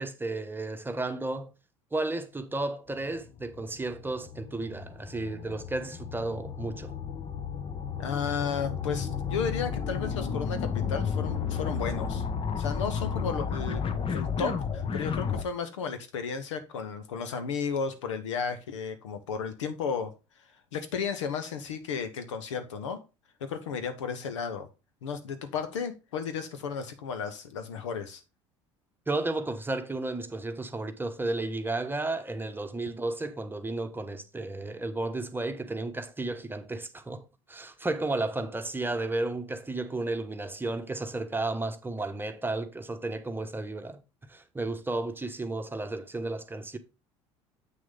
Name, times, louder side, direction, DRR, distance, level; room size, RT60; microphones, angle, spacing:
voice 1, 0.0-1.5 1.9-6.9 29.1-44.0 44.3-46.8, right 2 dB, 15° right, 1.1 m, -33 dB
sound 1, 2.9-15.4, left 6 dB, 35° left, 1.1 m, -33 dB
voice 2, 8.0-12.2 12.6-13.8 14.1-20.1 20.7-23.0 23.4-24.7 25.0-28.2, left 6 dB, 80° left, 1.2 m, -33 dB
7.9 x 6.3 x 3.8 m
hypercardioid pair, 65°, 15 cm